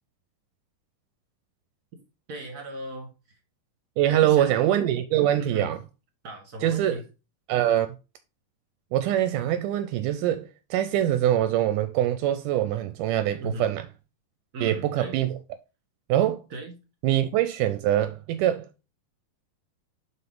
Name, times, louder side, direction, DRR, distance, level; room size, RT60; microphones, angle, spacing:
voice 1, 2.3-3.1 4.1-4.7 5.3-5.7 6.2-7.0 13.4-13.7 14.5-15.2 16.5-16.8, right 2 dB, 35° right, 1.8 m, -36 dB
voice 2, 4.0-5.8 6.6-7.0 7.5-7.9 8.9-13.8 14.6-15.4 16.1-16.4 17.0-18.7, right 12 dB, 80° right, 2.0 m, -23 dB
5.7 x 5.5 x 3.7 m
omnidirectional pair, 3.9 m